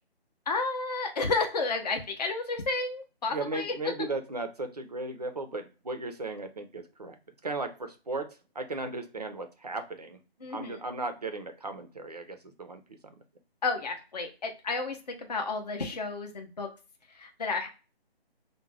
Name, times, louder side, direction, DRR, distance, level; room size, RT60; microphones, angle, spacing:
voice 1, 0.5-3.8 10.4-10.8 13.6-16.7 17.1-17.7, left 3 dB, 40° left, 4 dB, 0.6 m, -31 dB
voice 2, 3.3-7.2 7.4-10.2 10.5-13.1, right 2 dB, 40° right, 7 dB, 0.5 m, -36 dB
2.4 x 2.1 x 3.2 m, 0.32 s
figure-of-eight pair, 165°, 32 cm